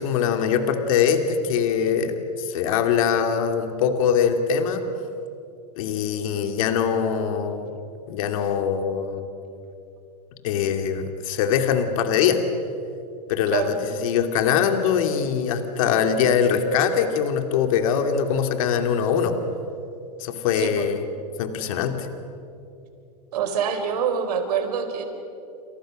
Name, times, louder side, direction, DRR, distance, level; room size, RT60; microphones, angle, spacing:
voice 1, 0.0-4.8 5.8-7.7 8.1-9.3 10.4-12.4 13.3-13.8 14.0-19.3 20.2-21.0 21.4-22.1, left 7 dB, 55° left, 6 dB, 2.6 m, -22 dB
voice 2, 20.6-20.9 23.3-25.0, right 7 dB, 70° right, 7 dB, 4.5 m, -25 dB
28.5 x 28.0 x 6.5 m, 2.6 s
supercardioid pair, 155°, 21 cm